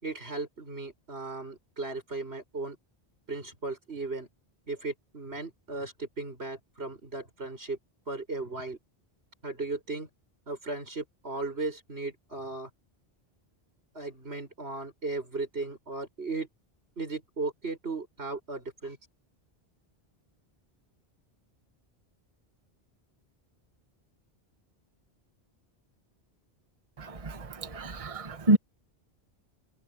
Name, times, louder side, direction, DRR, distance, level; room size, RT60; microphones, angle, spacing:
voice 1, 0.0-2.8 3.3-4.3 4.7-7.8 8.1-8.8 9.4-10.1 10.5-12.7 13.9-16.5 17.0-19.0, right 3 dB, 80° right, 7.1 m, -36 dB
voice 2, 27.7-28.6, right 2 dB, 35° right, 1.3 m, -25 dB
omnidirectional pair, 1.1 m